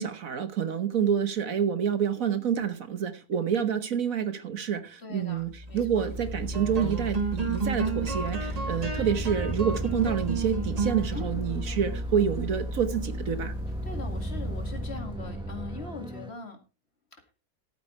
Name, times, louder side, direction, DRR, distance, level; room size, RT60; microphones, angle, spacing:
voice 1, 0.0-13.5, right 8 dB, 60° right, 1.5 m, -28 dB
voice 2, 5.0-6.1 11.1-11.5 13.8-16.6, left 4 dB, 40° left, 2.5 m, -41 dB
sound 1, 5.5-15.2, right 2 dB, 25° right, 1.5 m, -32 dB
Bus, 6.1-15.8, right 6 dB, 85° right, 4.3 m, -42 dB
sound 2, 7.8-16.3, right 1 dB, 5° right, 1.1 m, -39 dB
13.0 x 8.7 x 4.4 m
omnidirectional pair, 1.6 m